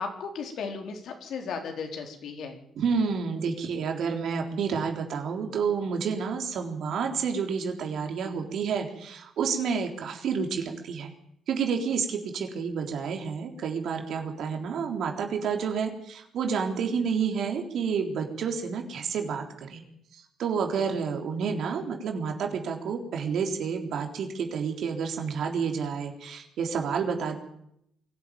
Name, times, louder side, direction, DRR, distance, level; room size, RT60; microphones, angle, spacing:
voice 1, 0.0-2.6, left 5 dB, 70° left, 3 dB, 4.2 m, -35 dB
voice 2, 2.8-11.1 11.5-19.8 20.1-27.4, right 6 dB, 70° right, 3 dB, 3.7 m, -29 dB
23.0 x 12.5 x 9.4 m, 0.74 s
cardioid pair, 95°, 0 cm